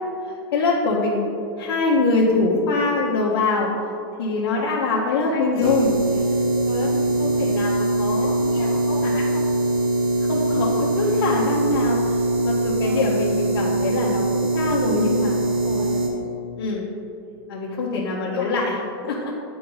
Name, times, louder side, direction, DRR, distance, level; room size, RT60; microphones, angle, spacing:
voice 1, 0.5-1.3 1.6-3.7 4.2-5.9 6.7-8.8 10.3-15.4 15.7-15.9 16.6-16.9 17.5-18.8 19.0-19.3, left 3 dB, 65° left, -4 dB, 0.9 m, -24 dB
voice 2, 5.1-5.7 6.8-7.2 8.2-9.4 12.8-13.2 15.4-16.1 17.9-18.7, left 3 dB, 45° left, -7 dB, 1.1 m, -36 dB
sound 1, 5.6-16.1, right 2 dB, 55° right, 1.3 m, -22 dB
8.3 x 3.9 x 3.9 m, 2.7 s
supercardioid pair, 145°, 13 cm